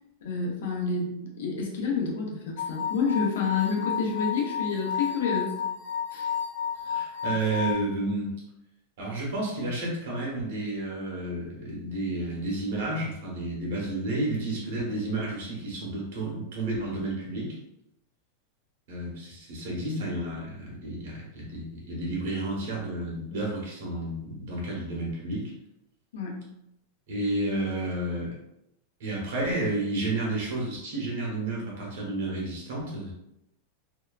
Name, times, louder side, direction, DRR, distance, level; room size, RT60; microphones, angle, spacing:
voice 1, 0.2-5.6 6.1-6.3 26.1-26.4, left 5 dB, 85° left, 0 dB, 0.7 m, -29 dB
sound 1, 2.6-7.7, left 8 dB, 35° left, 0.6 m, -32 dB
voice 2, 6.8-8.3 9.0-17.6 18.9-25.5 27.1-28.4 29.0-33.1, right 2 dB, 65° right, -3 dB, 1.1 m, -31 dB
2.8 x 2.2 x 2.3 m, 0.82 s
supercardioid pair, 175°, 0 cm